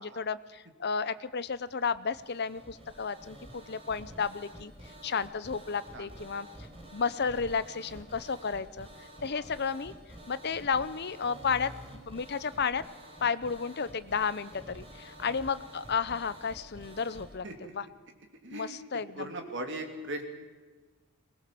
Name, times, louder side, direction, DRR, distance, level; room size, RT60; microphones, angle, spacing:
voice 1, 0.0-4.7 5.0-6.5 6.9-8.9 9.2-9.9 10.3-11.7 12.1-12.8 13.2-17.4 17.8-17.9 18.5-19.3, left 5 dB, 45° left, 15 dB, 0.7 m, -32 dB
sound 1, 1.5-17.3, right 1 dB, 25° right, 4.1 m, -49 dB
voice 2, 5.9-6.7 9.3-9.4 15.2-15.3 17.4-17.7 18.4-20.2, right 1 dB, 55° right, 4 dB, 3.0 m, -40 dB
21.5 x 20.0 x 7.7 m, 1.4 s
head